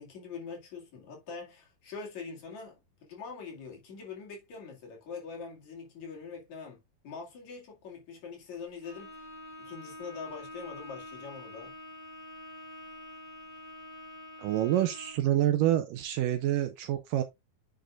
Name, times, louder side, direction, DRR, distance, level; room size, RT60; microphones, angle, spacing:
voice 1, 0.0-9.2 9.6-11.7, left 5 dB, 55° left, 3.3 m, -43 dB
Bowed string instrument, 8.8-15.3, left 2 dB, 25° right, 2.7 m, -46 dB
voice 2, 14.4-17.2, right 12 dB, 80° right, 2.0 m, -27 dB
9.1 x 6.3 x 2.4 m
omnidirectional pair, 4.3 m